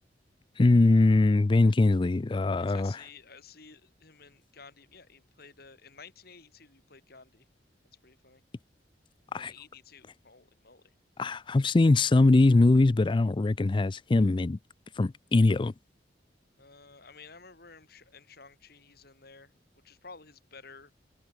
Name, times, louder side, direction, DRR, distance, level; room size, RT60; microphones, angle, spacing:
voice 1, 0.6-3.0 9.3-9.5 11.2-14.6 15.0-15.7, left 2 dB, 25° left, 0.4 m, -22 dB
voice 2, 2.5-7.4 8.0-8.4 9.3-10.8 16.6-19.6 19.8-20.9, left 5 dB, 60° left, 4.9 m, -52 dB
head